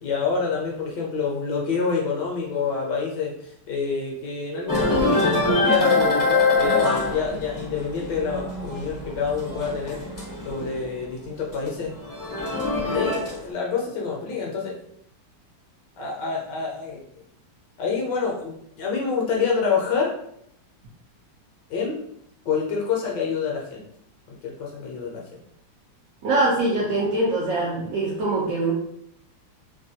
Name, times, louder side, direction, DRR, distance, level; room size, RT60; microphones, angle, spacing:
voice 1, 0.0-6.2 6.6-10.0 10.4-11.9 12.8-14.7 16.0-17.0 17.8-20.1 21.7-22.0 22.4-23.8 24.4-25.2, left 5 dB, 70° left, -2 dB, 1.2 m, -27 dB
sound 1, 4.7-10.9 11.3-13.5, left 3 dB, 30° left, 0.3 m, -24 dB
voice 2, 26.2-28.7, right 2 dB, 70° right, -5 dB, 0.8 m, -23 dB
3.2 x 2.2 x 2.7 m, 0.72 s
omnidirectional pair, 2.1 m